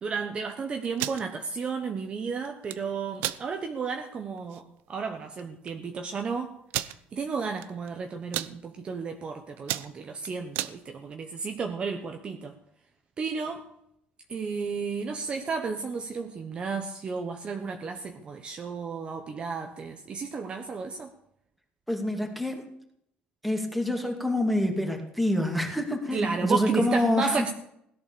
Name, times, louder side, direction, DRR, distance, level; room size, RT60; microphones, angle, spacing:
voice 1, 0.0-4.6 4.9-6.6 7.1-12.5 13.2-13.6 14.3-21.1 26.1-27.5, right 5 dB, 30° right, 1.2 m, -32 dB
sound 1, 0.8-1.2 2.4-2.8 3.2-3.4 3.9-4.0 4.4-4.6 5.4-5.5 5.7-5.8 6.7-7.0 7.6-7.9 8.2-8.5 9.1-9.3 9.6-10.7, right 15 dB, 90° right, 0.8 m, -32 dB
voice 2, 21.9-22.7 23.4-27.4, left 1 dB, ahead, 2.6 m, -27 dB
17.0 x 11.5 x 7.0 m
cardioid pair, 150°, 3 cm